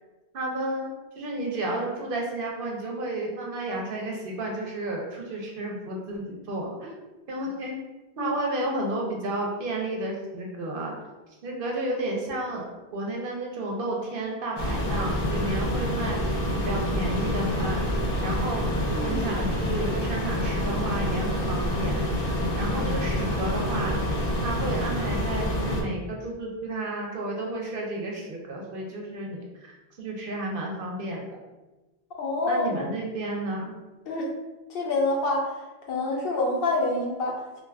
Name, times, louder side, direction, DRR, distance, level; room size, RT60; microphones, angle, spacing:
voice 1, 0.3-0.9 1.2-6.9 7.3-7.7 8.2-11.0 11.4-12.7 12.9-22.0 22.6-24.0 24.4-29.4 30.0-31.2 32.5-33.7, right 2 dB, 60° right, -1 dB, 0.7 m, -32 dB
sound 1, 14.6-25.8, left 1 dB, 50° left, 0.5 m, -27 dB
voice 2, 32.2-32.9 34.1-34.3 34.7-35.5 35.9-37.6, left 2 dB, 70° left, -1 dB, 0.8 m, -27 dB
2.5 x 2.3 x 3.3 m, 1.1 s
omnidirectional pair, 1.1 m